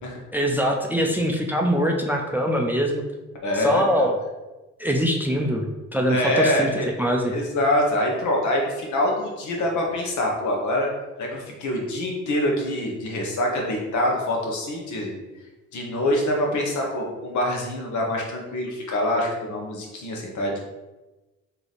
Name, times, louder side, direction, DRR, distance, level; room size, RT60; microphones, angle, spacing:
voice 1, 0.3-3.0 3.5-4.2 4.8-5.7 5.9-6.7 7.0-7.3, equal, 5° right, 2 dB, 0.4 m, -23 dB
voice 2, 3.4-4.1 6.1-6.9 7.2-10.9 11.2-15.1 15.7-20.6, left 1 dB, 75° left, -1 dB, 1.1 m, -25 dB
3.2 x 2.9 x 4.0 m, 1.1 s
cardioid pair, 90°, 30 cm